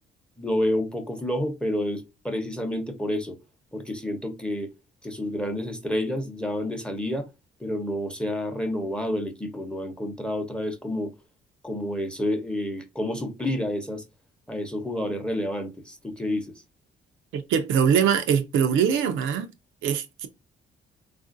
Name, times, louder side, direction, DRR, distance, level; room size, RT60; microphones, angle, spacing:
voice 1, 0.4-3.4 3.7-4.7 5.0-7.3 7.6-11.1 11.6-14.0 14.5-16.5, left 1 dB, 5° left, 0.8 m, -29 dB
voice 2, 17.3-19.5 19.8-20.3, right 8 dB, 80° right, 0.5 m, -22 dB
3.6 x 2.4 x 2.5 m
cardioid pair, 90°, 20 cm